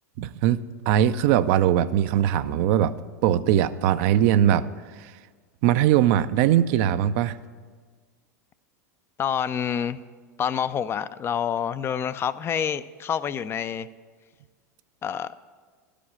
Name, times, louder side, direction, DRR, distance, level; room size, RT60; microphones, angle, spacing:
voice 1, 0.2-0.6 0.9-2.9 3.2-4.7 5.0-5.1 5.6-7.4, right 11 dB, 55° right, 14 dB, 0.4 m, -20 dB
voice 2, 9.2-10.0 10.4-13.9 15.0-15.5, left 8 dB, 25° left, 14 dB, 0.3 m, -27 dB
12.0 x 5.0 x 8.5 m, 1.5 s
hypercardioid pair, 95°, 9 cm